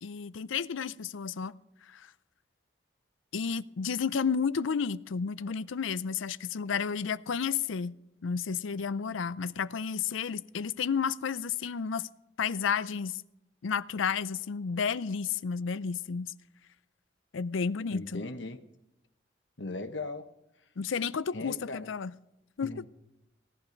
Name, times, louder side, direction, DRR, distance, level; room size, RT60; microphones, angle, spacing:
voice 1, 0.0-1.5 1.9-2.1 3.3-12.1 12.4-13.2 13.6-16.3 17.3-18.2 20.8-22.1 22.6-22.8, left 6 dB, 90° left, 0.5 m, -32 dB
voice 2, 17.9-18.6 19.6-20.3 21.3-21.9 22.6-22.9, left 2 dB, 75° left, 1.2 m, -38 dB
17.0 x 11.5 x 5.2 m
head